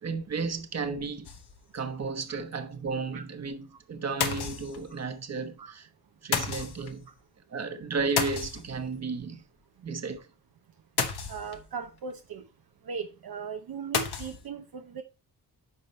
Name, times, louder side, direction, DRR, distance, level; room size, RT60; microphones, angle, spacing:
voice 1, 0.0-1.3 1.7-5.9 6.2-7.1 7.5-9.4 9.8-10.3, right 4 dB, 40° right, 1.2 m, -33 dB
sound 1, 1.2-1.8 2.2-2.3 2.5-2.6 4.2-5.1 6.3-7.0 8.2-9.0 11.0-11.8 13.9-14.5, left 6 dB, 80° left, 1.3 m, -31 dB
voice 2, 11.3-12.5 12.8-15.0, right 6 dB, 70° right, 0.8 m, -38 dB
10.0 x 5.7 x 3.1 m
wide cardioid pair, 105°, 38 cm